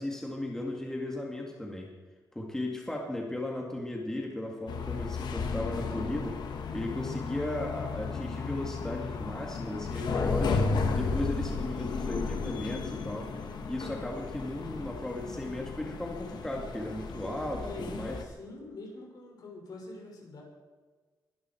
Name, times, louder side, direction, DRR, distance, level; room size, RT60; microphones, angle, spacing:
voice 1, 0.0-1.9 2.3-6.4 6.7-10.6 10.9-13.3 13.7-18.2, left 1 dB, 5° left, 0 dB, 2.3 m, -36 dB
sound 1, 4.7-18.2, left 4 dB, 80° left, 1.6 m, -34 dB
voice 2, 17.6-20.4, left 2 dB, 65° left, 0 dB, 5.5 m, -43 dB
22.5 x 12.0 x 4.5 m, 1.4 s
wide cardioid pair, 160°, 7 cm